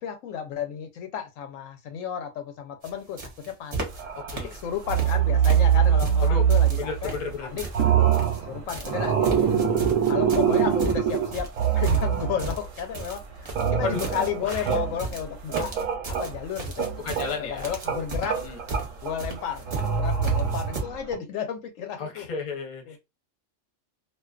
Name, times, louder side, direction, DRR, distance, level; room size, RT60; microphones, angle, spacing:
voice 1, 0.0-3.2 3.5-3.9 4.3-7.1 7.4-7.6 8.4-9.7 10.1-11.5 11.7-15.7 16.1-16.9 17.3-18.4 19.0-22.2 22.9-23.0, left 8 dB, 90° left, 1.0 m, -32 dB
sound 1, 2.8-2.9 3.2-4.0 4.3-5.2 5.4-8.4 8.7-20.8, right 3 dB, 40° right, 0.6 m, -35 dB
sound 2, 3.9-4.5 4.8-7.4 7.6-12.8 13.1-16.4 16.8-21.2, right 8 dB, 85° right, 1.0 m, -24 dB
voice 2, 6.8-7.7 13.8-14.0 14.4-14.7 17.0-17.7 18.3-18.6 22.0-23.0, left 4 dB, 40° left, 0.8 m, -33 dB
2.4 x 2.2 x 2.4 m
omnidirectional pair, 1.3 m